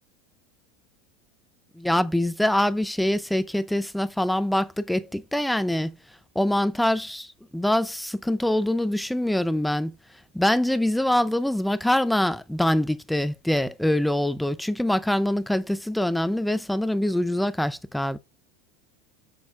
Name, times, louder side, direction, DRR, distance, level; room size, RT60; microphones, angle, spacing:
voice 1, 1.8-5.9 6.4-9.9 10.3-18.2, left 1 dB, ahead, 0.4 m, -24 dB
7.1 x 6.1 x 2.3 m
supercardioid pair, 160°, 0 cm